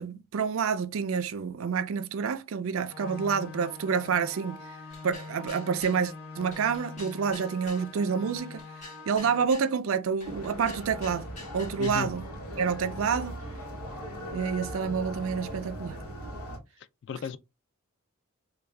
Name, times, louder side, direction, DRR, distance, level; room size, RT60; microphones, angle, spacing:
voice 1, 0.0-4.6 5.0-8.6 9.1-11.3 11.5-12.2 12.6-13.3 14.3-16.0, right 6 dB, 65° right, 0.4 m, -28 dB
sound 1, 2.9-9.5, left 4 dB, 70° left, 1.0 m, -44 dB
sound 2, 4.9-6.0 6.5-7.9 8.4-9.7 10.2-12.0, left 2 dB, 35° left, 2.2 m, -47 dB
sound 3, 10.2-16.6, equal, 85° left, 1.1 m, -39 dB
voice 2, 11.8-12.1 16.8-17.4, left 7 dB, 55° left, 0.3 m, -35 dB
3.5 x 2.2 x 3.2 m
head